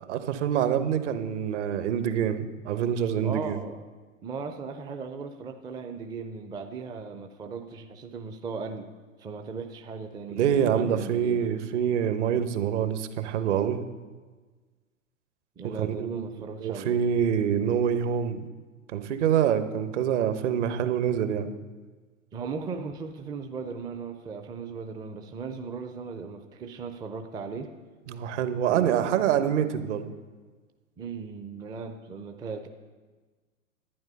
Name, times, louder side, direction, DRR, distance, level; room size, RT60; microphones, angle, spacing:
voice 1, 0.0-3.6 10.4-13.8 15.6-16.3 16.6-18.4 18.9-21.5 28.1-30.1, right 9 dB, 55° right, 10 dB, 1.1 m, -26 dB
voice 2, 3.2-3.8 4.2-8.9 9.2-11.5 15.6-17.0 22.3-27.7 28.6-29.2 31.0-32.7, right 5 dB, 10° right, 6 dB, 0.4 m, -37 dB
11.0 x 9.2 x 5.4 m, 1.4 s
hypercardioid pair, 105°, 41 cm